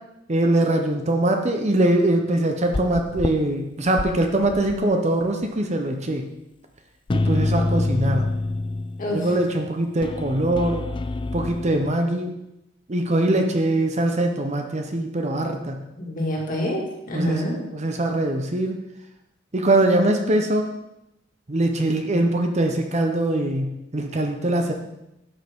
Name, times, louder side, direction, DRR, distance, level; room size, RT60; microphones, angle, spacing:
voice 1, 0.3-6.3 7.1-8.2 9.1-10.9 11.3-12.3 12.9-15.8 17.1-18.8 19.5-20.7 21.5-24.7, right 1 dB, 35° right, 4 dB, 0.8 m, -22 dB
sound 1, 2.7-3.3 3.9-4.8 5.2-5.3 7.1-9.2 10.0-11.9, left 2 dB, 25° left, 0.4 m, -26 dB
voice 2, 16.0-17.6, left 1 dB, 45° left, -2 dB, 2.2 m, -26 dB
11.0 x 6.4 x 3.6 m, 0.88 s
head